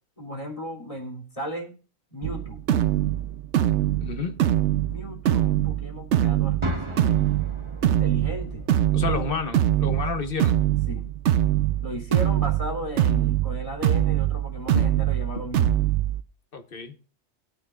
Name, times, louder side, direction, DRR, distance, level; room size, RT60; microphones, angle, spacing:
voice 1, 0.2-1.8 2.1-2.6 4.9-7.3 7.8-8.6 9.0-9.4 10.9-11.1 11.8-15.7, equal, 30° left, 3.2 m, -35 dB
sound 1, 2.2-16.2, right 12 dB, 70° right, 1.0 m, -23 dB
voice 2, 4.0-4.4 8.9-10.6 14.7-14.9 16.5-16.9, left 5 dB, 50° left, 1.4 m, -30 dB
sound 2, 6.6-10.6, right 1 dB, 25° right, 1.4 m, -37 dB
17.5 x 9.5 x 2.4 m
omnidirectional pair, 1.2 m